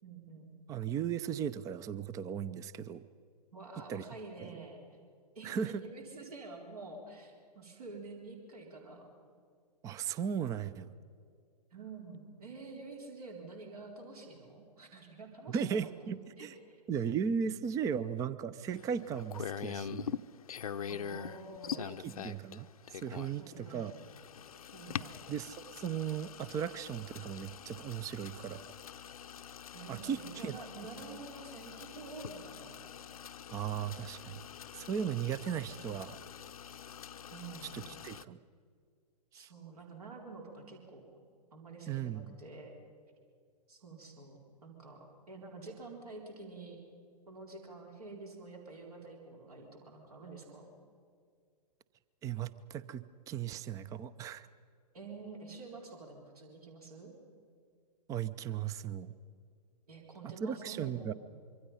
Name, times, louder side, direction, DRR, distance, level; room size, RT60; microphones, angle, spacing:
voice 1, 0.0-0.5 3.5-4.9 5.4-9.1 11.7-15.9 16.3-16.8 20.9-22.0 23.4-23.9 24.7-25.2 29.7-32.8 37.3-37.8 39.3-41.0 41.5-42.7 43.7-46.8 47.3-50.7 54.9-57.1 59.9-61.1, right 3 dB, 65° right, 1 dB, 3.9 m, -48 dB
voice 2, 0.7-3.0 3.9-4.0 4.4-4.5 5.4-5.8 9.8-10.9 15.5-16.5 16.9-20.2 21.8-23.9 25.3-28.6 29.9-30.5 33.5-34.4 34.7-36.2 37.7-38.4 39.3-39.5 41.9-42.3 52.2-54.5 58.1-59.1 60.4-61.1, right 8 dB, 15° right, 17 dB, 0.6 m, -37 dB
sound 1, 18.7-38.2, left 8 dB, 60° left, 0.7 m, -44 dB
25.5 x 23.5 x 5.7 m, 2.2 s
figure-of-eight pair, 115°, 21 cm